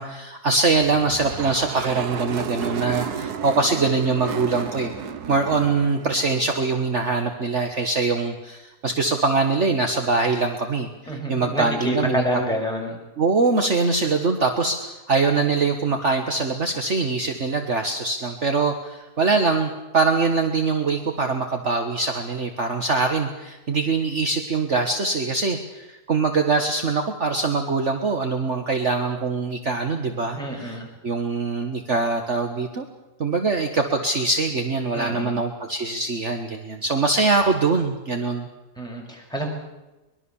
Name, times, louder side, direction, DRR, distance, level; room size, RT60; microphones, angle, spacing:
voice 1, 0.0-4.9 5.3-12.2 13.2-32.9 33.2-38.5, right 4 dB, 45° right, 5 dB, 1.8 m, -23 dB
sound 1, 0.6-7.0, right 7 dB, 75° right, 1.6 m, -33 dB
voice 2, 11.1-13.0 30.4-30.9 34.9-35.4 38.8-39.5, equal, ahead, -1 dB, 6.4 m, -27 dB
24.0 x 21.5 x 7.2 m, 1.0 s
omnidirectional pair, 1.7 m